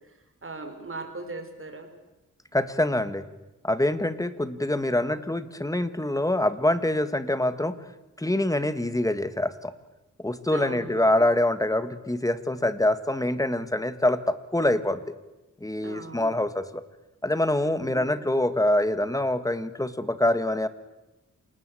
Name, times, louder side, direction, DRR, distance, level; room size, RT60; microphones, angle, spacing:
voice 1, 0.0-1.9 4.5-4.6 10.5-11.2 15.8-16.3 17.6-18.1, right 3 dB, 40° right, 6 dB, 4.9 m, -40 dB
voice 2, 2.5-3.3 3.6-7.8 8.2-9.7 10.2-15.0 15.6-16.8 17.2-20.7, left 1 dB, 10° left, 12 dB, 1.6 m, -25 dB
27.5 x 19.0 x 8.4 m, 1.0 s
wide cardioid pair, 105°, 32 cm